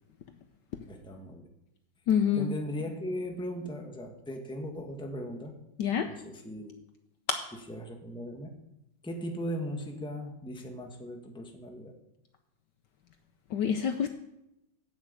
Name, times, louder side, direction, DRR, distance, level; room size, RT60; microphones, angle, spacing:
voice 1, 0.9-1.5 2.3-5.5 6.0-6.7 7.7-8.5 9.0-11.9, equal, 5° left, 3 dB, 1.1 m, -38 dB
voice 2, 2.1-2.5 5.8-6.1 7.3-7.4 13.5-14.1, left 8 dB, 65° left, 7 dB, 1.2 m, -26 dB
9.3 x 8.0 x 8.2 m, 0.87 s
omnidirectional pair, 2.3 m